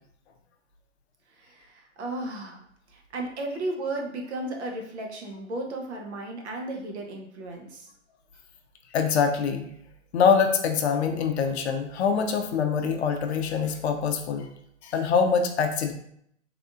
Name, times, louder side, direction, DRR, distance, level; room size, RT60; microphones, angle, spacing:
voice 1, 1.3-2.6 2.9-7.9, right 2 dB, 60° right, 1 dB, 0.8 m, -34 dB
voice 2, 8.9-9.7 10.1-14.5 14.8-15.9, left 6 dB, 60° left, 5 dB, 0.5 m, -24 dB
3.4 x 2.4 x 2.4 m, 0.69 s
hypercardioid pair, 130°, 38 cm